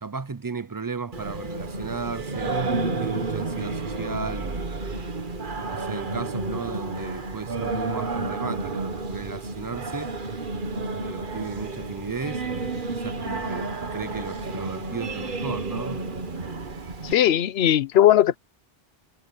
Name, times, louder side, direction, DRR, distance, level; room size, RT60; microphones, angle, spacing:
voice 1, 0.0-4.7 5.7-10.1 11.0-16.0, right 4 dB, 30° right, 0.4 m, -35 dB
Singing, 1.1-17.1, right 3 dB, 55° right, 1.6 m, -31 dB
voice 2, 17.0-18.4, left 11 dB, 80° left, 0.9 m, -18 dB
omnidirectional pair, 1.1 m